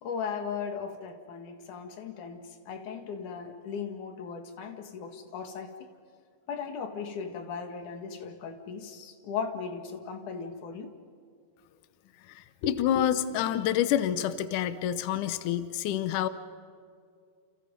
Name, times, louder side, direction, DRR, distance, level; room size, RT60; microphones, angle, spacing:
voice 1, 0.0-5.9 6.5-10.9 12.6-12.7, left 6 dB, 55° left, 6 dB, 3.0 m, -37 dB
voice 2, 12.3-16.3, left 11 dB, 85° left, 12 dB, 1.8 m, -28 dB
29.5 x 29.0 x 5.4 m, 2.3 s
omnidirectional pair, 4.8 m